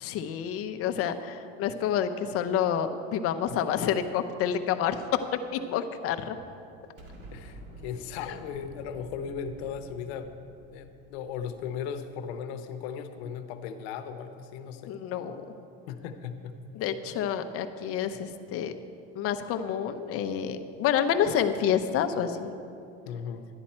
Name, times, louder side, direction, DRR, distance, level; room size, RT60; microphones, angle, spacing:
voice 1, 0.0-6.4 14.9-15.4 16.8-18.7 19.2-22.5, left 8 dB, 45° left, 7 dB, 0.7 m, -28 dB
Explosion, 7.0-12.1, right 1 dB, 55° right, 1.9 m, -49 dB
voice 2, 7.3-10.3 10.7-15.0 15.9-16.5 23.1-23.5, left 7 dB, 85° left, 8 dB, 0.9 m, -37 dB
11.5 x 10.0 x 4.3 m, 2.6 s
cardioid pair, 135°, 31 cm